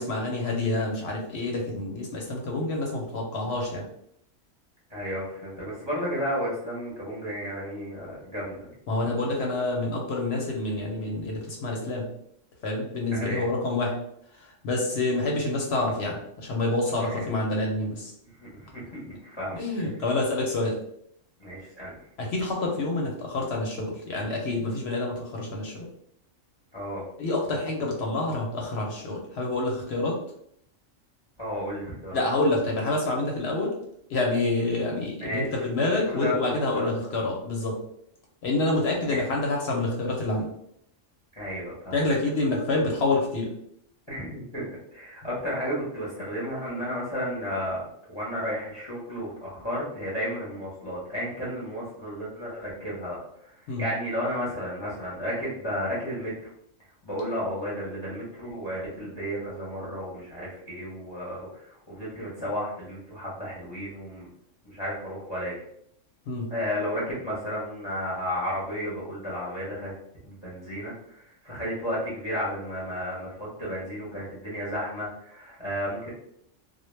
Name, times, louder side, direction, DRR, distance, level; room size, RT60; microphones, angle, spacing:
voice 1, 0.0-3.8 8.9-12.1 12.6-14.0 14.3-18.1 19.5-20.8 22.2-25.9 27.2-30.2 32.1-33.7 34.1-37.8 38.4-40.5 41.9-43.5 53.7-53.9 66.3-66.5, left 2 dB, 65° left, -1 dB, 0.8 m, -27 dB
voice 2, 4.9-8.5 13.1-13.4 17.0-17.3 18.4-19.6 21.4-22.0 26.7-27.0 31.4-32.2 35.2-35.5 36.0-37.2 39.1-39.3 41.3-42.0 44.1-47.8 48.1-53.2 53.8-56.5 57.0-64.3 64.6-65.5 66.5-69.9 70.2-76.1, equal, 25° left, -6 dB, 0.7 m, -33 dB
2.1 x 2.1 x 3.1 m, 0.71 s
omnidirectional pair, 1.3 m